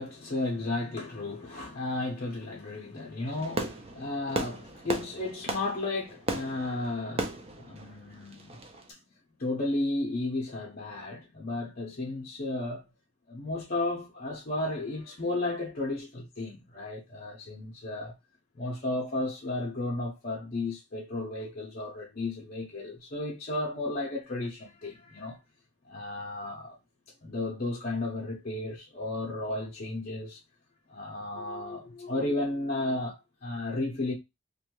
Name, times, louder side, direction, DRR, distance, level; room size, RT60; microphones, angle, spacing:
voice 1, 0.0-8.6 8.9-9.0 9.4-12.9 13.3-18.1 18.6-25.4 25.8-26.8 27.2-30.4 30.9-34.1, left 2 dB, 40° left, 0.6 m, -33 dB
Fireworks, 3.2-8.9, right 2 dB, 25° right, 0.4 m, -36 dB
2.6 x 2.2 x 2.9 m
head